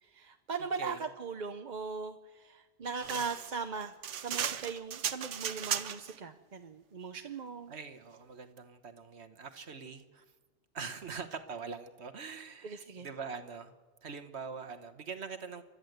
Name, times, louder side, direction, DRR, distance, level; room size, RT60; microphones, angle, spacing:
voice 1, 0.0-7.7 12.6-13.1, right 5 dB, 45° right, 7 dB, 0.8 m, -39 dB
voice 2, 0.6-1.0 7.7-10.2 10.7-13.7 14.0-15.6, right 5 dB, 65° right, 9 dB, 1.4 m, -43 dB
sound 1, 3.0-6.2, right 8 dB, 85° right, 1.2 m, -36 dB
29.0 x 12.5 x 8.0 m, 1.4 s
omnidirectional pair, 1.2 m